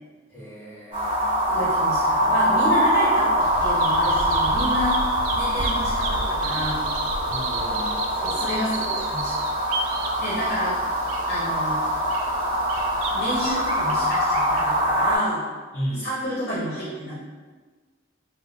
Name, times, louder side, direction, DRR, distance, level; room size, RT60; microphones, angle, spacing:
voice 1, 0.3-1.4 7.3-8.0 15.7-16.1, equal, 10° left, -10 dB, 1.2 m, -34 dB
sound 1, 0.9-15.2, equal, 25° right, 0.8 m, -23 dB
voice 2, 1.5-5.0 5.3-6.9 8.2-9.3 10.2-10.8 11.3-12.0 13.0-15.4 16.0-17.2, equal, 50° left, -8 dB, 0.7 m, -30 dB
Bird vocalization bird call bird song, 3.4-14.8, right 3 dB, 70° right, 0.3 m, -33 dB
3.5 x 2.0 x 2.2 m, 1.4 s
head